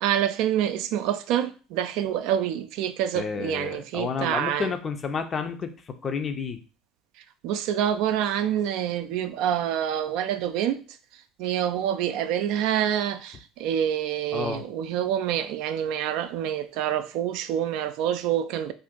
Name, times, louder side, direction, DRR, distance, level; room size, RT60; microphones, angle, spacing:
voice 1, 0.0-4.7 7.4-10.8 11.4-18.7, right 10 dB, 65° right, 0.3 m, -27 dB
voice 2, 3.1-6.6 14.3-14.6, left 5 dB, 35° left, 0.5 m, -30 dB
2.6 x 2.5 x 3.7 m
hypercardioid pair, 75°, 0 cm